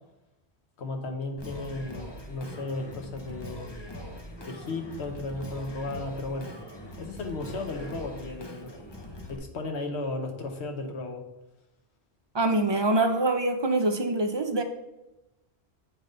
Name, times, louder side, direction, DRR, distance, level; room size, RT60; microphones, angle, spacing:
voice 1, 0.8-3.7 4.4-6.5 7.0-8.7 9.3-11.2, left 2 dB, 80° left, 4 dB, 1.2 m, -35 dB
Singing, 1.4-9.4, equal, 25° left, 0.7 m, -42 dB
voice 2, 12.3-14.6, right 2 dB, 35° right, 5 dB, 0.5 m, -24 dB
8.7 x 3.8 x 3.8 m, 0.96 s
omnidirectional pair, 1.1 m